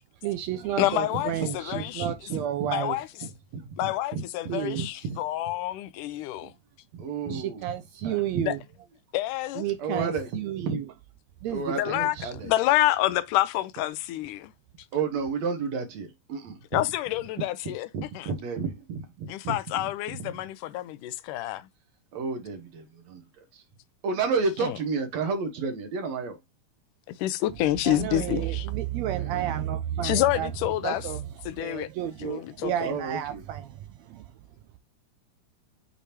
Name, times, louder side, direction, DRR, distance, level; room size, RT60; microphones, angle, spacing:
voice 1, 0.2-3.0 4.5-4.8 6.4-6.5 7.3-8.6 9.6-10.9 11.4-12.3 27.8-30.5 30.8-31.2 31.6-34.2, right 11 dB, 85° right, 1.5 m, -31 dB
voice 2, 0.8-2.1 2.7-3.1 3.8-6.5 8.4-8.6 9.1-9.7 11.7-14.5 16.7-18.3 19.3-21.7 24.6-24.8 27.1-28.7 30.0-31.1 31.5-31.9 32.2-32.9, left 15 dB, 80° left, 2.1 m, -28 dB
voice 3, 1.7-2.7 3.5-5.2 6.9-7.7 8.0-8.4 9.8-10.3 10.6-10.8 11.5-12.5 14.9-16.8 17.9-19.6 22.1-23.2 24.0-26.4 29.2-29.5 32.8-33.4, right 4 dB, 65° right, 2.1 m, -31 dB
6.8 x 5.0 x 2.8 m
omnidirectional pair, 3.8 m